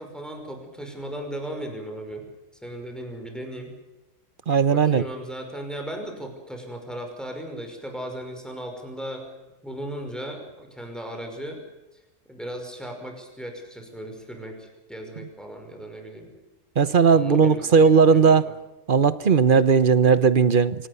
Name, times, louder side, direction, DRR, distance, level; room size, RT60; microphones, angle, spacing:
voice 1, 0.0-2.3 2.6-3.7 4.7-9.3 9.6-11.6 12.3-16.3 17.1-18.3, right 1 dB, ahead, 3 dB, 5.6 m, -36 dB
voice 2, 4.5-5.0 16.8-18.5 18.9-20.9, right 6 dB, 45° right, 15 dB, 1.0 m, -17 dB
25.5 x 19.0 x 6.9 m, 1.0 s
omnidirectional pair, 1.4 m